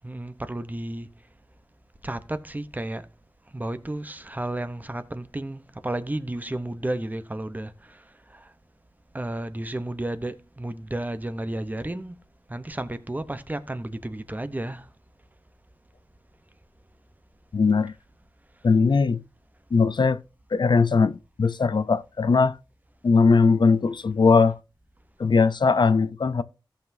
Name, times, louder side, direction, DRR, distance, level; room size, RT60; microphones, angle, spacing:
voice 1, 0.0-1.1 2.0-3.1 3.5-8.0 8.3-8.5 9.1-12.2 12.5-14.9, right 1 dB, 20° right, 0.8 m, -32 dB
voice 2, 17.5-17.9 18.6-19.2 19.7-20.2 20.5-22.6 23.0-24.5 25.2-26.4, left 4 dB, 70° left, 0.6 m, -20 dB
16.0 x 5.8 x 2.7 m
wide cardioid pair, 90°, 8 cm